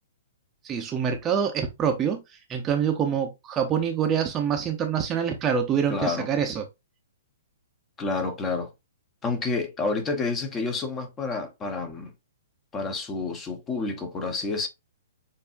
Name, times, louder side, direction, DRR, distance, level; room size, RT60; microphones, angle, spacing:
voice 1, 0.6-2.2 2.5-6.6, right 7 dB, 20° right, 0.7 m, -25 dB
voice 2, 5.9-6.3 8.0-8.7 9.2-12.1 12.7-14.7, left 3 dB, 20° left, 1.0 m, -29 dB
6.9 x 2.7 x 2.5 m
hypercardioid pair, 145°, 0 cm